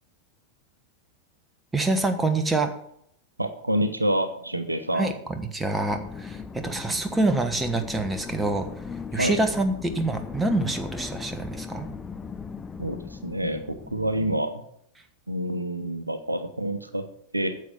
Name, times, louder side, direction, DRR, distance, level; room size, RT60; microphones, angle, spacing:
voice 1, 1.7-2.7 5.0-8.7 9.1-11.9, right 2 dB, 10° right, 7 dB, 1.3 m, -26 dB
voice 2, 3.4-5.1 9.1-9.4 12.8-14.6 15.3-17.1 17.3-17.6, right 1 dB, 85° right, 9 dB, 0.9 m, -27 dB
sound 1, 5.9-14.4, left 5 dB, 15° left, 0.6 m, -38 dB
9.4 x 7.5 x 6.1 m, 0.70 s
figure-of-eight pair, 90°, 0 cm